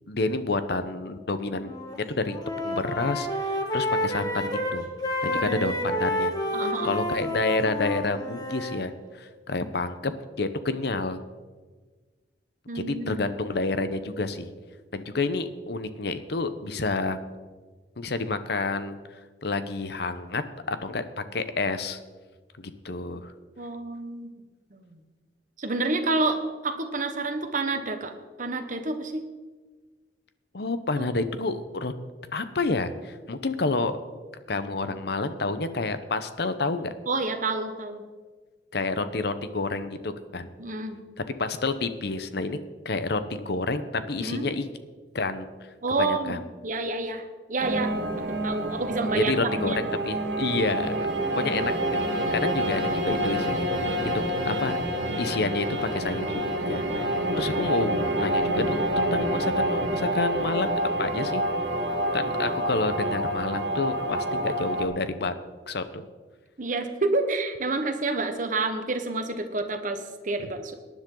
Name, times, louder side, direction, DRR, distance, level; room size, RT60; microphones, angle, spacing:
voice 1, 0.1-1.7 2.1-2.4 2.6-4.9 5.2-6.3 6.8-10.1 10.4-11.2 12.7-14.5 14.9-17.2 18.0-19.0 19.4-20.4 20.7-22.0 22.6-23.3 30.5-31.9 32.3-33.9 34.5-36.9 38.7-40.5 41.4-42.6 42.8-44.7 45.1-45.5 46.0-46.4 49.1-51.1 51.4-52.0 52.3-54.7 55.2-57.0 57.4-61.4 62.1-65.3 65.7-66.0, left 3 dB, 65° left, 11 dB, 0.9 m, -29 dB
Wind instrument woodwind instrument, 1.6-2.0 2.3-8.8, left 1 dB, 20° left, 1.8 m, -29 dB
voice 2, 5.2-5.6 6.5-7.0 12.7-13.2 23.6-24.3 24.7-25.0 25.6-28.1 28.4-29.2 30.9-31.1 37.1-38.0 40.6-41.0 44.2-44.5 45.8-46.3 46.6-47.9 48.3-49.8 66.6-70.7, right 3 dB, 45° right, 6 dB, 1.3 m, -29 dB
sound 1, 47.6-64.8, right 1 dB, 70° right, 2.2 m, -27 dB
18.5 x 10.5 x 3.9 m, 1.4 s
head